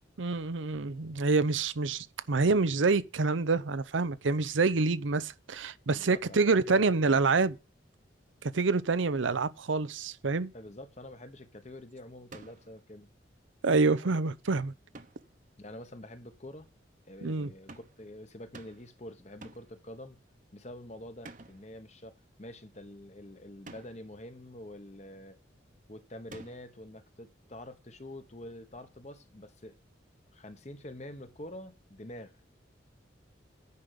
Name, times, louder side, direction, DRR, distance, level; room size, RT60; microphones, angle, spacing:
voice 1, 0.2-7.5 8.5-10.5 13.6-14.7 17.2-17.5, right 4 dB, 85° right, 0.7 m, -27 dB
voice 2, 5.9-7.2 10.5-13.1 15.6-16.7 17.1-20.2 20.5-22.1 22.4-25.4 25.9-29.8 30.3-32.4, left 1 dB, 35° left, 1.2 m, -46 dB
sound 1, 12.3-12.8 14.9-15.4 17.7-18.1 18.5-19.0 19.4-19.8 21.2-21.7 23.7-24.1 26.3-26.8, right 2 dB, 40° right, 1.0 m, -50 dB
9.7 x 5.2 x 8.0 m
head